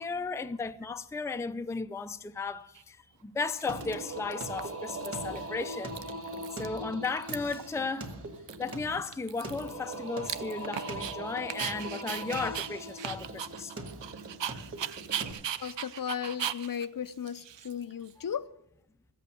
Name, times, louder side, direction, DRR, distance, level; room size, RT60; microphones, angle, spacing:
voice 1, 0.0-5.9 6.5-8.1 8.6-13.7, left 4 dB, 5° left, 0.4 m, -35 dB
Dog, 2.8-2.9 3.5-4.0 4.3-5.1 5.4-5.5 5.7-6.8 7.0-7.7 8.1-8.2 8.5-11.2 11.5-18.1, right 10 dB, 85° right, 0.7 m, -38 dB
Singing, 3.7-15.3, right 1 dB, 30° right, 1.9 m, -40 dB
voice 2, 15.6-18.5, left 8 dB, 50° left, 0.6 m, -35 dB
15.0 x 8.3 x 9.2 m
wide cardioid pair, 150°, 43 cm